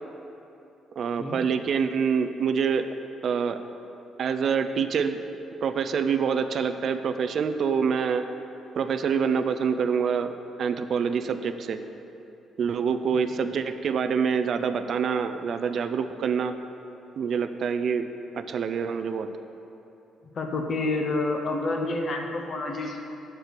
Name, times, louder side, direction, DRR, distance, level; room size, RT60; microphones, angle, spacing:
voice 1, 1.0-2.9 3.2-3.6 4.2-5.2 5.6-8.2 8.8-10.3 10.6-11.8 12.6-16.5 17.2-18.1 18.3-19.3, right 6 dB, 45° right, 10 dB, 0.3 m, -26 dB
voice 2, 20.4-23.0, left 2 dB, 35° left, 3 dB, 0.7 m, -28 dB
6.7 x 4.4 x 6.5 m, 3.0 s
cardioid pair, 160°, 0 cm